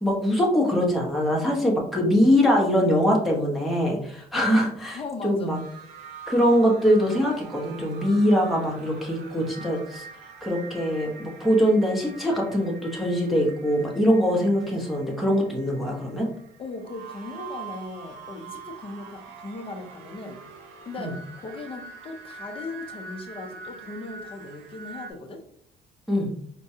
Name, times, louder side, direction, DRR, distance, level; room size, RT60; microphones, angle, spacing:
voice 1, 0.0-5.6 6.3-10.1 10.4-16.3 21.0-21.1 26.1-26.3, equal, ahead, -3 dB, 0.9 m, -22 dB
voice 2, 4.9-5.6 16.6-20.4 20.8-25.4, left 3 dB, 35° left, 5 dB, 0.7 m, -38 dB
sound 1, 5.5-25.1, right 5 dB, 85° right, 0.6 m, -44 dB
4.4 x 2.2 x 2.7 m, 0.66 s
cardioid pair, 110°, 17 cm